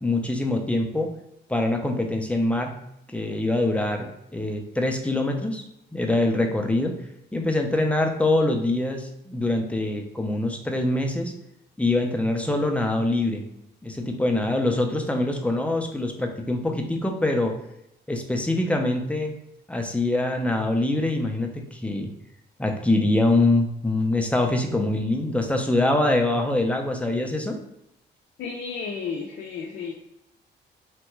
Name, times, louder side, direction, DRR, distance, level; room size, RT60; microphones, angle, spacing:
voice 1, 0.0-1.1 1.5-2.7 3.1-5.6 5.9-6.9 7.3-11.3 11.8-13.4 13.8-17.5 18.1-19.3 19.7-22.1 22.6-27.6, left 2 dB, 5° left, 3 dB, 0.5 m, -24 dB
voice 2, 28.4-29.9, left 5 dB, 85° left, -2 dB, 0.4 m, -32 dB
3.4 x 2.2 x 3.0 m, 0.83 s
cardioid pair, 100°, 18 cm